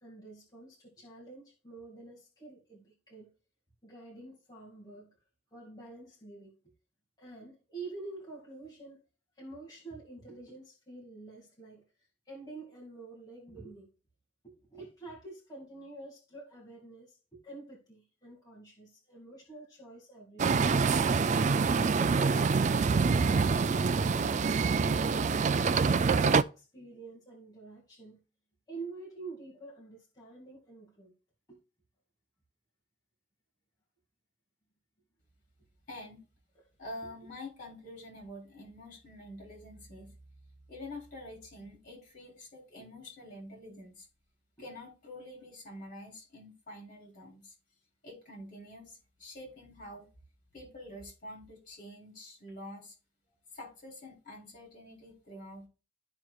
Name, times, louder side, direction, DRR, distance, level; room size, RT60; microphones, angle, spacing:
voice 1, 0.0-3.3 3.8-5.1 5.5-6.6 7.2-9.0 9.4-11.8 12.3-13.9 14.4-20.5 25.3-28.2 28.7-31.1 31.5-31.6, right 3 dB, 20° left, 2.2 m, -48 dB
sound 1, 20.4-26.4, right 5 dB, 40° right, 0.3 m, -26 dB
voice 2, 35.9-36.2 36.8-40.1 40.7-44.1 44.6-47.5 48.0-50.1 50.5-53.0 53.5-55.7, left 1 dB, 45° left, 3.8 m, -47 dB
13.5 x 4.9 x 2.3 m
head